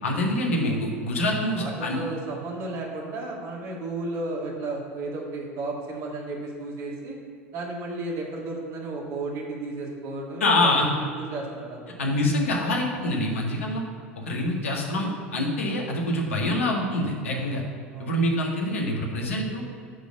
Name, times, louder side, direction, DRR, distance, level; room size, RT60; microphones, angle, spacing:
voice 1, 0.0-2.0 10.4-10.9 12.0-13.8 14.2-17.6 18.0-19.6, left 1 dB, 75° left, -1 dB, 1.8 m, -25 dB
voice 2, 1.6-7.2 7.5-12.0 17.9-18.1, right 2 dB, 45° right, -2 dB, 2.3 m, -33 dB
10.5 x 4.1 x 7.3 m, 2.1 s
figure-of-eight pair, 80°, 7 cm